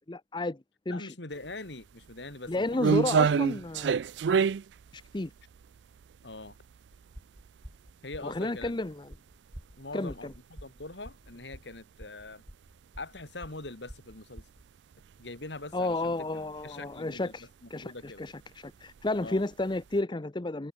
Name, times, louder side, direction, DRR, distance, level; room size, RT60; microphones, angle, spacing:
voice 1, 0.1-0.6 0.9-1.1 2.5-4.0 4.9-5.3 8.2-9.1 9.9-10.3 15.7-20.7, left 2 dB, 25° left, 0.7 m, -32 dB
voice 2, 0.9-3.0 6.2-6.6 8.0-8.7 9.8-12.4 13.0-14.4 15.2-17.3 17.6-18.2 19.2-19.4, left 2 dB, 75° left, 3.1 m, -43 dB
sound 1, 1.4-1.5 2.0-7.1 7.5-7.6 8.3-8.4 8.7-8.8 9.8-9.9 10.2-10.4 10.9-11.0 11.3-11.4 13.5-13.6 14.9-15.3 15.6-16.1 16.4-16.6 16.9-17.0 18.1-18.3 18.9-19.6 19.9-20.0, right 6 dB, 75° right, 0.4 m, -27 dB
sound 2, 6.9-14.6, equal, 20° right, 2.1 m, -48 dB
open air
head